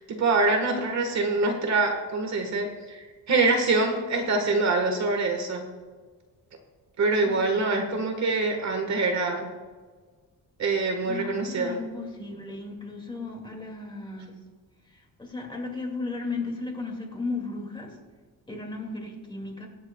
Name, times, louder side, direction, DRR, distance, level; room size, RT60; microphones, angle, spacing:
voice 1, 0.0-5.6 7.0-9.5 10.6-11.8, right 3 dB, 45° right, 4 dB, 1.4 m, -25 dB
voice 2, 7.2-7.7 11.0-14.3 14.9-18.0 18.5-19.7, left 3 dB, 10° left, 1 dB, 2.0 m, -35 dB
23.0 x 8.2 x 2.2 m, 1.4 s
cardioid pair, 160°, 38 cm